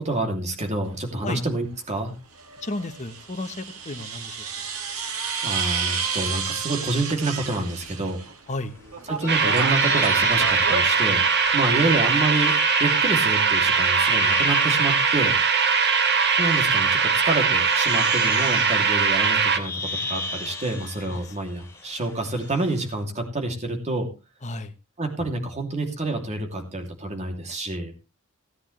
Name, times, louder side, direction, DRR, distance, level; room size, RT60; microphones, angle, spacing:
voice 1, 0.0-2.1 5.4-8.2 9.1-11.2 11.5-12.5 12.8-15.3 16.4-24.1 25.0-27.9, right 2 dB, 35° right, 4 dB, 2.8 m, -28 dB
sound 1, 0.9-1.0 2.4-8.4 8.7-11.9, right 5 dB, 90° right, 2.1 m, -32 dB
voice 2, 2.6-4.7 8.5-8.7 21.1-21.3 24.4-24.7, left 2 dB, 35° left, 9 dB, 1.2 m, -33 dB
sound 2, 9.2-15.4 16.2-16.8 17.5-22.9, left 2 dB, 10° left, 2.9 m, -35 dB
sound 3, 9.3-19.6, right 5 dB, 50° right, 1.4 m, -21 dB
17.5 x 9.8 x 3.3 m, 0.29 s
head